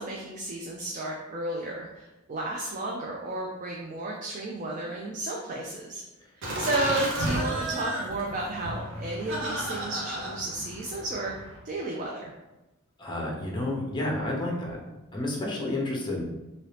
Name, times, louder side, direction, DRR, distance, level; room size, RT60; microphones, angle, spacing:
voice 1, 0.0-6.0 6.3-11.4 11.6-12.3, right 2 dB, 35° right, -2 dB, 0.4 m, -33 dB
Laughter, 6.4-11.6, right 1 dB, 60° right, 0.8 m, -33 dB
voice 2, 13.0-14.8 15.1-16.2, left 1 dB, 20° left, -2 dB, 0.7 m, -30 dB
2.8 x 2.7 x 3.3 m, 1.0 s
head